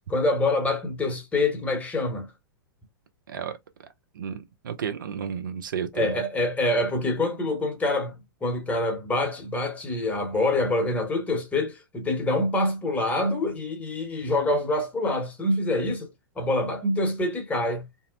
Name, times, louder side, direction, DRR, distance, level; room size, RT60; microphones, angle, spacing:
voice 1, 0.1-2.3 5.9-8.1 8.4-16.1 16.4-17.8, left 2 dB, 10° left, 0.8 m, -26 dB
voice 2, 3.3-3.6 4.1-6.2, right 7 dB, 60° right, 0.5 m, -32 dB
2.6 x 2.0 x 2.4 m
figure-of-eight pair, 100°, 12 cm